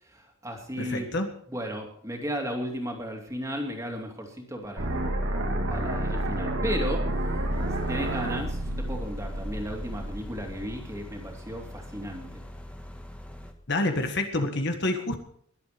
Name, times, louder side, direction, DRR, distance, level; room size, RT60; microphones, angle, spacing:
voice 1, 0.0-1.1 1.5-5.0 5.7-7.3 7.8-12.4, equal, 15° right, 1 dB, 2.7 m, -35 dB
voice 2, 0.8-1.3 13.7-15.2, left 2 dB, 50° left, 6 dB, 1.6 m, -27 dB
sound 1, 4.8-10.7, right 1 dB, 60° right, 2.1 m, -30 dB
sound 2, 7.5-13.5, left 1 dB, 5° left, 1.4 m, -43 dB
21.5 x 8.2 x 5.2 m, 0.62 s
head